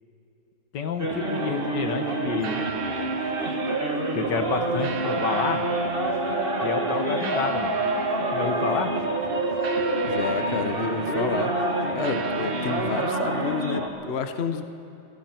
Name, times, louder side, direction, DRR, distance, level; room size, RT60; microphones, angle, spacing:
voice 1, 0.7-2.6 4.1-5.6 6.6-7.8 8.3-8.9, left 5 dB, 65° left, 7 dB, 1.8 m, -29 dB
sound 1, 1.0-13.9, right 2 dB, 30° right, 1.9 m, -27 dB
sound 2, 1.1-13.2, right 6 dB, 55° right, 1.3 m, -39 dB
voice 2, 10.1-11.7 11.9-14.6, left 6 dB, 45° left, 8 dB, 0.9 m, -30 dB
29.0 x 20.0 x 4.5 m, 3.0 s
omnidirectional pair, 2.1 m